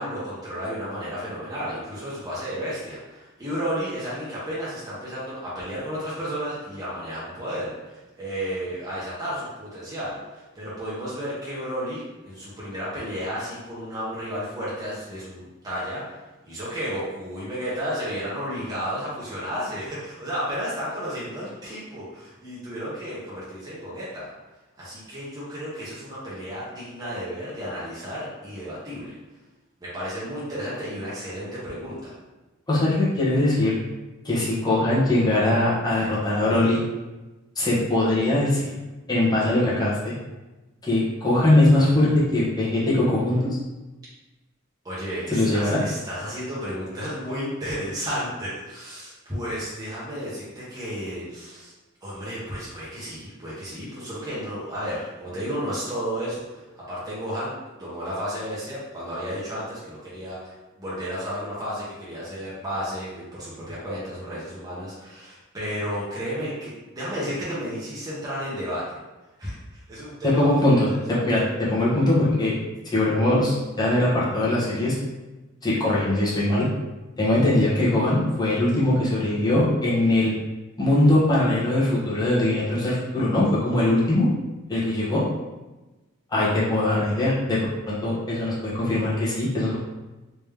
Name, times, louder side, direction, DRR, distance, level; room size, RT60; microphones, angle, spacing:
voice 1, 0.0-24.3 24.8-29.1 29.8-32.1 44.8-51.7 52.0-57.5 57.8-69.0 69.4-69.6 69.9-70.5 70.9-71.2, equal, 20° right, -9 dB, 1.0 m, -32 dB
voice 2, 32.7-33.7 34.2-36.8 37.6-38.7 39.1-40.1 40.8-43.5 45.3-45.8 70.2-70.9 71.2-72.5 72.8-74.9 75.6-76.7 77.2-80.3 80.8-84.3 84.7-85.2 86.3-87.6 87.9-89.8, left 1 dB, 20° left, -7 dB, 1.1 m, -21 dB
3.4 x 3.0 x 3.4 m, 1.1 s
head